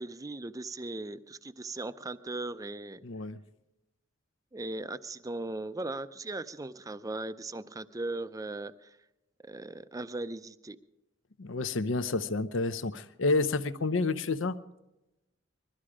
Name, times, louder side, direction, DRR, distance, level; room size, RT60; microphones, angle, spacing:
voice 1, 0.0-3.0 4.5-8.9 9.5-10.8, right 2 dB, 15° right, 13 dB, 0.5 m, -38 dB
voice 2, 3.0-3.4 11.4-14.6, left 3 dB, 75° left, 12 dB, 0.7 m, -29 dB
21.0 x 13.0 x 4.9 m, 0.95 s
head